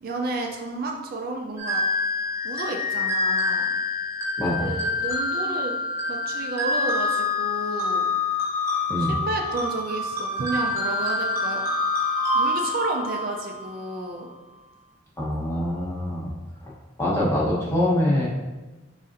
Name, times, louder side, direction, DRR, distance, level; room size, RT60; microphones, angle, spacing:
voice 1, 0.0-1.8 2.4-3.7 4.6-5.8 6.1-8.1 9.0-11.6 12.3-14.3, right 2 dB, 45° right, 1 dB, 0.4 m, -31 dB
sound 1, 1.6-13.9, left 3 dB, 15° right, 0.9 m, -26 dB
voice 2, 4.4-4.7 8.9-9.2 15.2-16.3 16.6-16.7 17.0-18.3, left 1 dB, 15° left, -5 dB, 0.9 m, -24 dB
4.8 x 4.1 x 2.5 m, 1.1 s
head